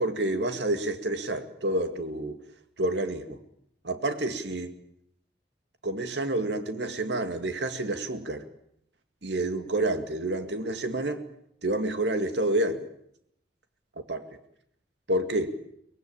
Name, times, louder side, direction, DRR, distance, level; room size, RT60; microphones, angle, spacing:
voice 1, 0.0-2.4 2.8-3.4 3.8-4.7 5.8-8.4 9.2-11.2 11.6-12.9 14.0-14.3 15.1-15.5, right 1 dB, 75° right, 8 dB, 2.1 m, -29 dB
24.0 x 19.5 x 8.8 m, 0.72 s
head